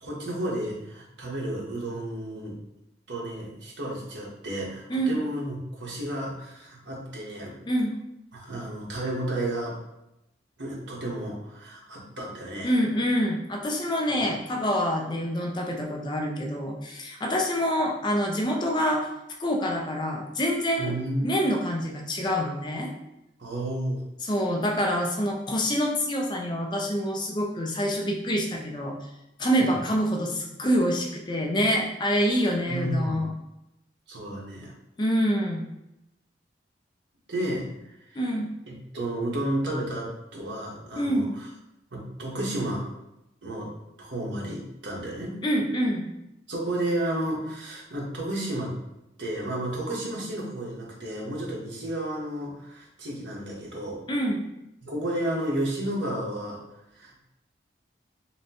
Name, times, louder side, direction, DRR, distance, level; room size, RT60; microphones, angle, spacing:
voice 1, 0.0-2.6 3.1-7.6 8.3-9.8 10.6-12.8 20.8-21.4 23.4-24.0 29.6-29.8 32.7-33.2 34.1-34.7 37.3-37.7 38.1-38.2 38.7-41.5 41.9-42.9 43.4-43.7 44.0-45.4 46.5-48.7 49.2-54.0 54.8-56.6 56.9-57.2, right 1 dB, 85° right, -4 dB, 1.2 m, -32 dB
voice 2, 12.6-19.1 19.4-20.9 21.2-22.9 24.2-29.0 29.4-33.3 35.0-35.7 38.2-38.5 40.9-41.3 45.4-46.1 54.1-54.4, equal, 25° left, 1 dB, 0.5 m, -26 dB
5.7 x 2.2 x 2.9 m, 0.89 s
head